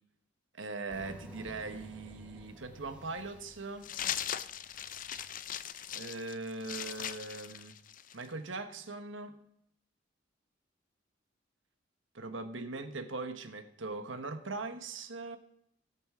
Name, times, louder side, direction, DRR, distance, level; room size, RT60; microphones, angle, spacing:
voice 1, 0.5-3.9 5.9-7.7 8.1-9.4 12.1-15.4, right 3 dB, 85° right, 8 dB, 1.3 m, -40 dB
sound 1, 0.9-5.9, right 1 dB, 5° right, 2.1 m, -53 dB
sound 2, 3.8-8.3, left 10 dB, 45° left, 0.5 m, -39 dB
17.5 x 8.8 x 3.8 m, 0.73 s
head